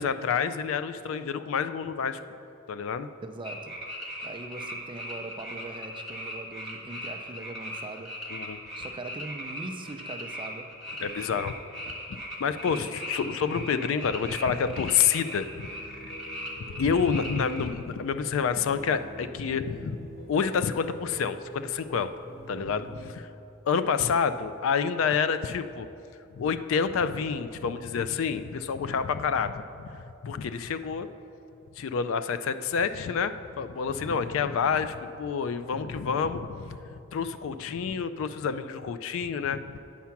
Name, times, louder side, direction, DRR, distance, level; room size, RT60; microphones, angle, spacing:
voice 1, 0.0-2.2 2.7-3.1 8.3-8.6 11.0-11.5 12.4-15.5 16.0-16.1 16.7-22.1 22.5-23.3 23.7-25.9 26.3-31.1 31.8-36.8 37.1-39.8, left 6 dB, 65° left, 12 dB, 0.3 m, -28 dB
voice 2, 3.2-3.8 4.2-8.2 8.8-10.7 12.6-12.9, right 2 dB, 20° right, 6 dB, 0.4 m, -41 dB
sound 1, 3.4-17.7, equal, ahead, 1.4 m, -39 dB
sound 2, 15.3-23.1, equal, 45° left, 1.5 m, -46 dB
8.4 x 5.8 x 5.8 m, 2.8 s
head